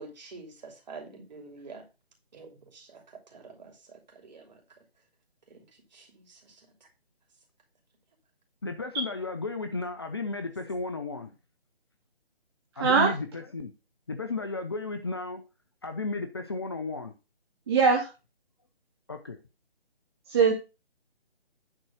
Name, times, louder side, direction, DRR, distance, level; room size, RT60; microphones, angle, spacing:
voice 1, 0.0-1.8 2.3-4.6 5.5-5.6 5.9-6.7, right 4 dB, 45° right, 3 dB, 3.0 m, -47 dB
voice 2, 8.6-11.3 12.8-13.7 14.1-15.4 15.8-17.1 19.1-19.4, left 3 dB, 25° left, 7 dB, 0.6 m, -33 dB
voice 3, 12.8-13.1 17.7-18.1 20.3-20.5, right 5 dB, 25° right, 0 dB, 1.1 m, -22 dB
9.8 x 3.9 x 6.2 m, 0.28 s
figure-of-eight pair, 150°, 31 cm